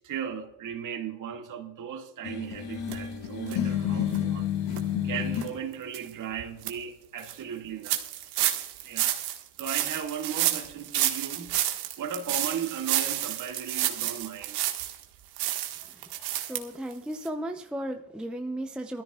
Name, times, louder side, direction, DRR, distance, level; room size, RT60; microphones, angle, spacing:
voice 1, 0.0-4.5 5.0-8.0 8.4-8.6 8.8-9.2 9.6-11.6 12.0-14.6, right 8 dB, 45° right, 2.2 m, -36 dB
sound 1, 2.2-5.5, left 9 dB, 70° left, 1.9 m, -30 dB
sound 2, 2.9-3.0 3.5-3.6 4.1-4.2 4.7-4.8 5.3-5.5 5.9-6.0 6.4-6.7 7.2-7.3 7.8-15.0 15.4-16.6 16.9-17.0 17.2-17.3, right 13 dB, 65° right, 1.7 m, -30 dB
voice 2, 16.5-19.0, right 1 dB, ahead, 0.7 m, -35 dB
21.0 x 14.0 x 2.4 m
supercardioid pair, 105°, 44 cm